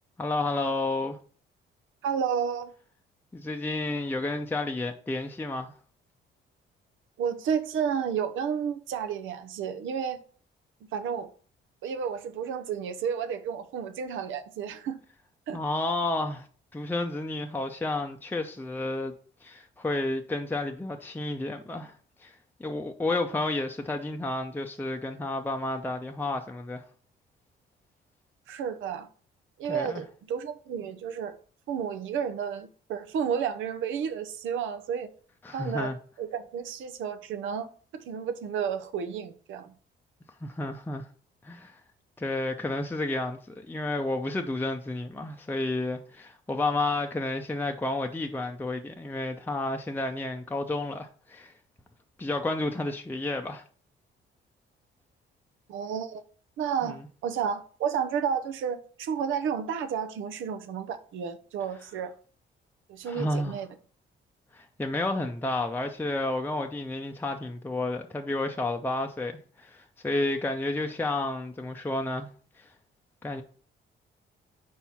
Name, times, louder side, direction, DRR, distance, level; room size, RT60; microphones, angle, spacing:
voice 1, 0.2-1.2 3.3-5.7 15.5-16.5 16.7-19.1 19.4-21.9 22.2-22.3 22.6-26.9 29.7-30.0 35.4-36.0 40.4-41.1 41.4-41.8 42.2-51.5 52.2-53.6 56.8-56.9 63.0-63.6 64.5-72.3 72.6-72.7 73.2-73.4, left 2 dB, 10° left, 0.6 m, -31 dB
voice 2, 2.0-2.7 7.2-10.2 10.9-11.3 11.8-15.0 15.5-15.6 28.5-29.1 29.6-31.3 31.7-35.1 35.5-35.9 36.2-37.7 37.9-39.7 55.7-56.2 56.6-62.1 62.9-63.7, right 7 dB, 85° right, 0.7 m, -31 dB
4.7 x 4.5 x 5.6 m
cardioid pair, 90°, 20 cm